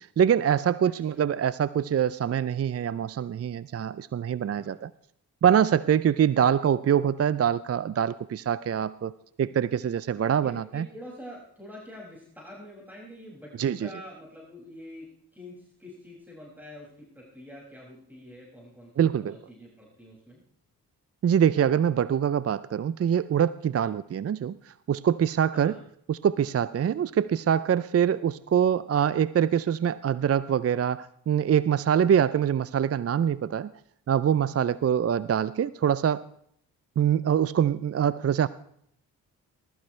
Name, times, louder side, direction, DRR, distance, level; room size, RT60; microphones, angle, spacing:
voice 1, 0.0-4.9 5.4-9.1 9.4-10.9 13.6-13.9 19.0-19.3 21.2-25.8 26.1-33.7 34.1-36.2 37.0-38.5, right 8 dB, 35° right, 17 dB, 0.5 m, -24 dB
voice 2, 0.8-1.2 4.6-4.7 9.4-9.6 10.3-20.4 23.8-23.9 25.5-25.8, left 1 dB, 5° right, -4 dB, 6.1 m, -46 dB
19.5 x 13.5 x 3.3 m, 0.68 s
supercardioid pair, 40°, 41 cm